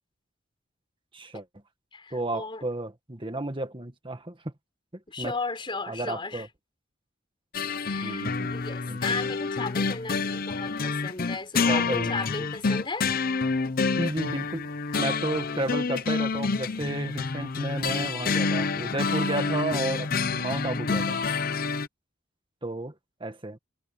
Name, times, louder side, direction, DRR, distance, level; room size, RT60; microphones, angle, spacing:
voice 1, 1.1-1.5 2.1-4.5 5.2-5.4 5.9-6.5 8.0-8.5 8.9-9.0 11.7-12.4 12.7-12.8 14.0-14.7 15.0-21.2 22.6-23.0 23.2-23.6, right 2 dB, 25° right, 1.8 m, -32 dB
voice 2, 1.9-2.7 5.1-6.5 7.8-13.2, left 3 dB, 25° left, 4.1 m, -35 dB
sound 1, 7.5-21.9, left 4 dB, 50° left, 0.7 m, -28 dB
head